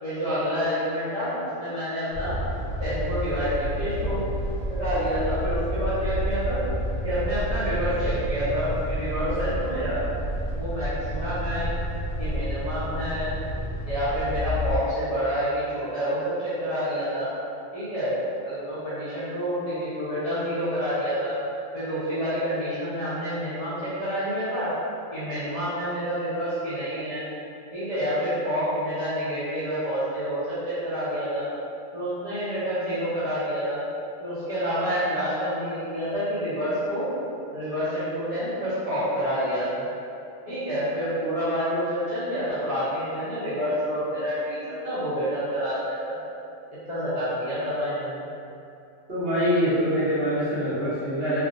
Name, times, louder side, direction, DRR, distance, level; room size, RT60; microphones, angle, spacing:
voice 1, 0.0-2.3 2.8-4.2 4.7-6.6 7.0-10.0 10.5-11.7 12.2-13.3 13.8-17.3 17.7-18.1 18.4-21.3 21.7-24.7 25.1-27.2 27.7-31.5 31.9-33.8 34.2-37.1 37.5-39.9 40.5-46.2 46.9-48.2, equal, 35° left, -15 dB, 0.7 m, -28 dB
rear ST coach bus light passenger presence, 2.1-14.8, equal, 75° left, 1.5 m, -30 dB
voice 2, 49.1-51.4, equal, 45° right, -13 dB, 1.2 m, -24 dB
3.4 x 2.5 x 2.4 m, 2.6 s
omnidirectional pair, 1.5 m